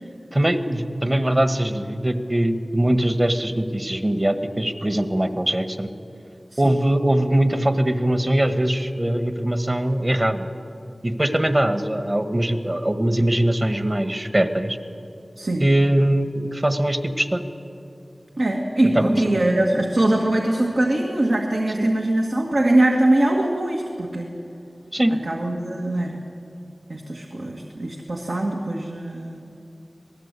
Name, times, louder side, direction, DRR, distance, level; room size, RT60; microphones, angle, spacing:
voice 1, 0.3-5.9 6.6-10.5 11.0-14.8 15.6-17.4 18.9-19.4 21.8-21.9 24.9-25.1, right 1 dB, 30° right, 8 dB, 1.6 m, -21 dB
voice 2, 15.4-15.7 18.4-24.3 25.2-26.2 26.9-29.4, right 1 dB, 70° right, 0 dB, 2.0 m, -22 dB
26.5 x 18.5 x 8.4 m, 2.7 s
wide cardioid pair, 60°, 0 cm